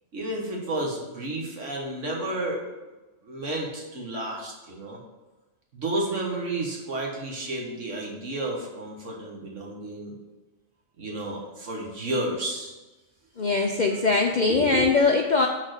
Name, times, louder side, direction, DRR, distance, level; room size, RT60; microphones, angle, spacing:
voice 1, 0.1-2.6 3.2-5.0 5.7-10.1 11.0-12.7 14.5-14.9, right 1 dB, 70° right, -1 dB, 1.7 m, -31 dB
voice 2, 13.4-15.5, left 3 dB, 60° left, 3 dB, 0.5 m, -21 dB
6.4 x 4.2 x 6.5 m, 1.1 s
omnidirectional pair, 1.3 m